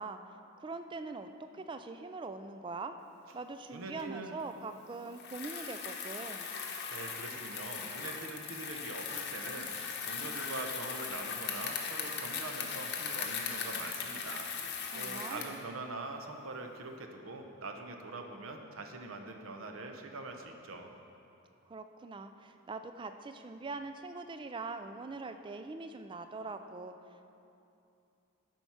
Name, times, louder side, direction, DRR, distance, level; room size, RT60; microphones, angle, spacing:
voice 1, 0.0-2.9 3.3-6.5 14.9-15.6 21.7-27.3, right 3 dB, 20° right, 8 dB, 0.3 m, -43 dB
voice 2, 3.7-4.3 6.9-14.5 14.9-20.9, right 2 dB, 65° right, 4 dB, 0.8 m, -43 dB
Bicycle, 5.1-15.6, left 6 dB, 50° left, 0.8 m, -39 dB
11.5 x 4.6 x 5.6 m, 2.7 s
head